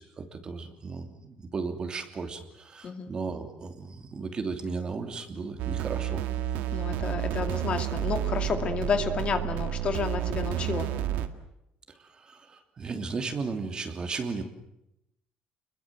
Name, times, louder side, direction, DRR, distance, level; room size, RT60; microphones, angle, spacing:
voice 1, 0.0-6.2 11.9-14.4, right 4 dB, 30° right, 6 dB, 2.9 m, -35 dB
sound 1, 5.6-11.3, right 11 dB, 85° right, 2.0 m, -30 dB
voice 2, 6.7-10.9, left 6 dB, 40° left, 7 dB, 2.3 m, -30 dB
29.5 x 22.0 x 7.7 m, 0.83 s
cardioid pair, 150°, 3 cm